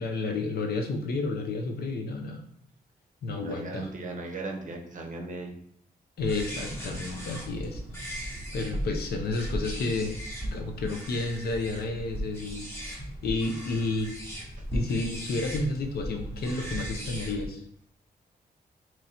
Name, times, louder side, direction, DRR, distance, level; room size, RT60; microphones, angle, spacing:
voice 1, 0.0-2.4 3.2-3.9 6.2-8.2 8.5-10.3 10.5-12.7 13.2-14.1 14.7-17.6, left 3 dB, 80° left, 5 dB, 0.6 m, -31 dB
voice 2, 3.3-5.6 8.4-8.5 12.8-12.9 14.6-14.7, right 2 dB, 55° right, 3 dB, 0.6 m, -38 dB
sound 1, 6.2-17.5, equal, 15° left, 1.0 m, -37 dB
3.0 x 2.6 x 4.2 m, 0.66 s
cardioid pair, 90°, 16 cm